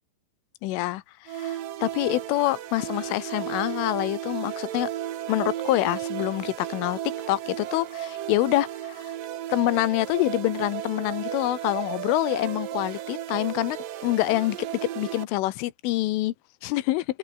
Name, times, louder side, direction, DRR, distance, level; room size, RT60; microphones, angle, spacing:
voice 1, 0.6-1.0 1.3-4.9 5.3-7.0 7.3-9.0 9.5-13.8 14.0-14.7 15.0-16.3 16.6-17.1, left 17 dB, 90° left, 3.6 m, -26 dB
sound 1, 1.3-15.2, right 12 dB, 65° right, 2.4 m, -34 dB
omnidirectional pair, 5.5 m